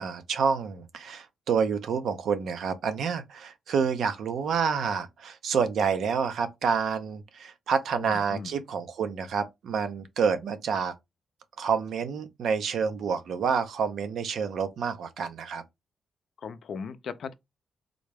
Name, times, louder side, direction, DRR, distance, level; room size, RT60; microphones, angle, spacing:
voice 1, 0.0-10.9 11.6-15.6, right 6 dB, 75° right, 0.6 m, -28 dB
voice 2, 8.0-8.6 16.4-17.3, left 6 dB, 65° left, 0.4 m, -38 dB
3.8 x 2.2 x 3.3 m
cardioid pair, 110°, 0 cm